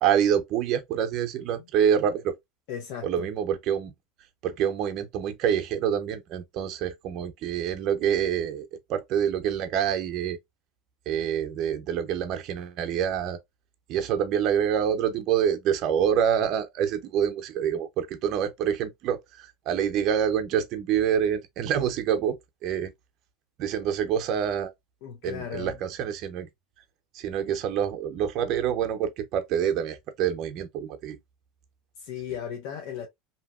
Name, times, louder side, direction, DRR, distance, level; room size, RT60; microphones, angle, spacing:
voice 1, 0.0-2.4 3.0-3.9 4.4-10.4 11.1-13.4 13.9-22.9 23.6-24.7 25.2-26.5 27.1-31.2, right 9 dB, 50° right, 0.6 m, -26 dB
voice 2, 2.7-3.3 25.0-25.8 32.0-33.1, left 8 dB, 65° left, 0.7 m, -36 dB
2.8 x 2.8 x 2.4 m
supercardioid pair, 130°, 0 cm